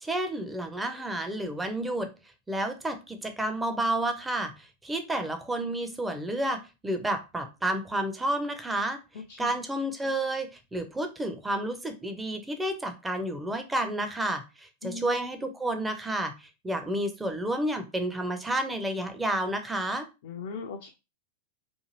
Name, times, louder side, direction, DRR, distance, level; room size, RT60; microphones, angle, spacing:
voice 1, 0.0-2.1 2.5-9.0 9.4-20.1, right 1 dB, 10° right, 7 dB, 0.5 m, -30 dB
voice 2, 20.2-20.9, left 4 dB, 55° left, 4 dB, 0.4 m, -38 dB
2.6 x 2.4 x 2.8 m, 0.27 s
figure-of-eight pair, 90°, 0 cm